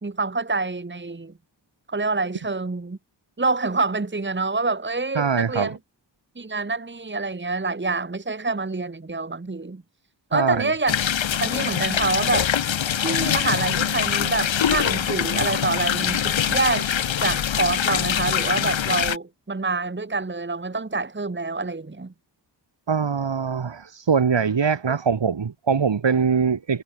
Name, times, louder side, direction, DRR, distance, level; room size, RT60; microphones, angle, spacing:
voice 1, 0.0-1.3 1.9-3.0 3.4-5.8 6.4-9.8 10.3-11.0 11.4-12.5 13.0-16.9 17.2-22.1, right 3 dB, 25° right, 1.5 m, -26 dB
voice 2, 5.2-5.7 10.3-10.7 22.9-26.8, right 6 dB, 75° right, 2.6 m, -22 dB
Wash hands, 10.9-19.2, left 9 dB, 90° left, 1.0 m, -23 dB
wide cardioid pair, 80°, 44 cm